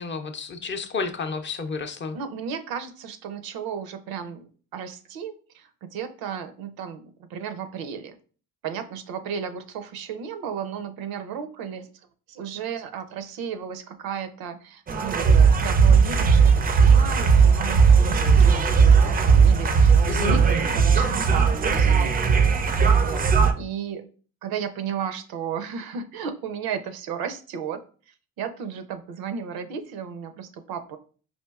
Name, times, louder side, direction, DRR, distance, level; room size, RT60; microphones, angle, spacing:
voice 1, 0.0-2.2 20.1-20.4, left 4 dB, 30° left, 7 dB, 0.5 m, -31 dB
voice 2, 2.1-8.2 8.6-11.9 12.3-22.6 22.9-24.1 24.4-27.8 28.1-31.0, right 7 dB, 80° right, 9 dB, 0.6 m, -34 dB
sound 1, 14.9-23.5, right 5 dB, 25° right, 0.4 m, -17 dB
4.3 x 2.5 x 2.3 m, 0.40 s
cardioid pair, 80°, 36 cm